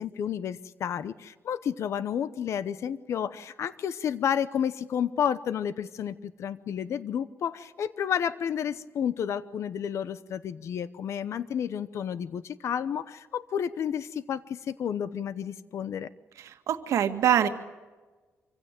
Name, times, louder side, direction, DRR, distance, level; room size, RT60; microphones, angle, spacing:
voice 1, 0.0-16.1, left 8 dB, 65° left, 15 dB, 0.9 m, -31 dB
voice 2, 16.4-17.5, right 10 dB, 75° right, 7 dB, 1.9 m, -24 dB
26.5 x 16.0 x 9.1 m, 1.3 s
cardioid pair, 130°, 5 cm